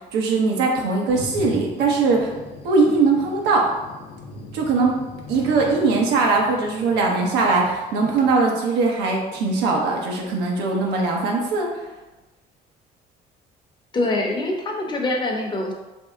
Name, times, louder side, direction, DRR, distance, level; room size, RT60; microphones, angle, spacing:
voice 1, 0.0-2.3 2.6-3.7 4.5-5.0 5.3-11.8, right 3 dB, 90° right, 0 dB, 0.8 m, -20 dB
Thunder, 1.1-8.3, left 3 dB, 65° left, 0.6 m, -39 dB
voice 2, 13.9-15.7, left 2 dB, 25° left, 1 dB, 0.7 m, -24 dB
3.2 x 2.7 x 3.5 m, 1.1 s
cardioid pair, 110°, 17 cm